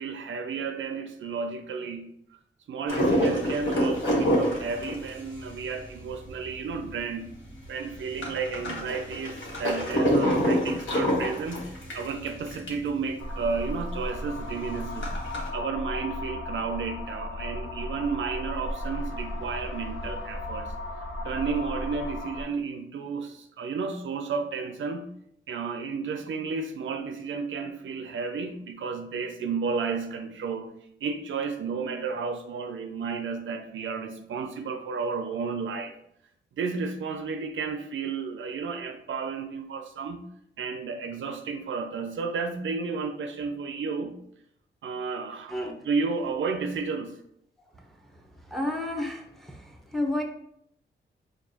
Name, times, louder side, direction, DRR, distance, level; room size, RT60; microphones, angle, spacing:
voice 1, 0.0-2.1 2.7-7.3 7.7-11.7 11.9-15.1 15.5-20.7 21.2-25.1 25.5-30.7 31.0-35.9 36.6-40.3 40.6-44.2 44.8-45.6 45.8-47.2, right 5 dB, 70° right, 6 dB, 0.4 m, -32 dB
sound 1, 2.9-6.9 7.3-7.4 7.6-12.9 13.3-13.4 13.6-13.7 14.2-15.5, equal, 65° left, 1.2 m, -26 dB
sound 2, 13.2-22.4, left 1 dB, 85° left, 0.6 m, -35 dB
voice 2, 48.1-50.2, left 1 dB, ahead, 1 dB, 0.7 m, -32 dB
4.6 x 2.3 x 2.7 m, 0.73 s
cardioid pair, 60°, 21 cm